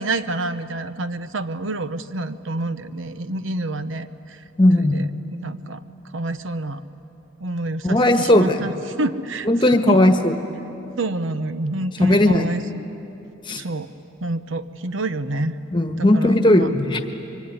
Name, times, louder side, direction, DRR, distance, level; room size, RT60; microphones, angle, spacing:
voice 1, 0.0-4.4 4.8-5.8 6.1-6.8 7.4-9.5 9.9-10.0 11.0-12.6 13.5-13.9 14.2-15.5 16.0-16.8, right 2 dB, 65° right, 11 dB, 0.9 m, -28 dB
voice 2, 4.6-5.0 7.8-8.7 9.5-10.3 12.0-12.5 13.4-13.6 15.7-17.1, left 1 dB, 25° left, 6 dB, 1.3 m, -17 dB
25.0 x 24.0 x 9.7 m, 2.9 s
head